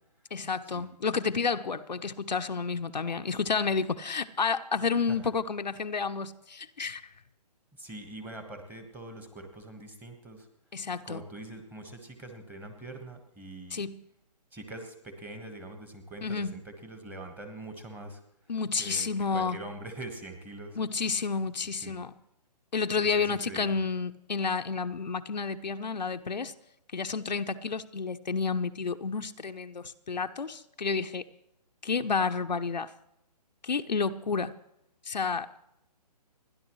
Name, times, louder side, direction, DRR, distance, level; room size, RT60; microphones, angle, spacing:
voice 1, 0.3-7.0 10.7-11.2 13.7-14.0 16.2-16.6 18.5-19.6 20.7-22.1 22.7-26.5 26.9-31.2 31.8-32.9 33.6-34.5 35.1-35.5, left 5 dB, 90° left, 7 dB, 0.8 m, -30 dB
voice 2, 7.8-10.4 11.0-13.8 14.5-18.2 18.8-20.8 21.8-21.9 23.0-23.7, right 2 dB, 10° right, 5 dB, 1.4 m, -43 dB
30.0 x 10.5 x 3.1 m, 0.83 s
hypercardioid pair, 150°, 21 cm